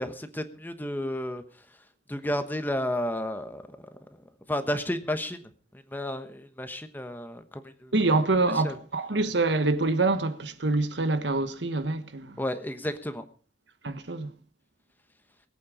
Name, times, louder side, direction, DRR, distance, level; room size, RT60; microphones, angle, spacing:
voice 1, 0.0-1.4 2.1-4.0 4.5-5.4 5.9-7.9 8.6-8.8 12.4-13.2, left 1 dB, 10° left, 1.1 m, -32 dB
voice 2, 7.9-12.4 13.8-14.3, right 3 dB, 85° right, 1.3 m, -26 dB
21.5 x 8.7 x 4.9 m
head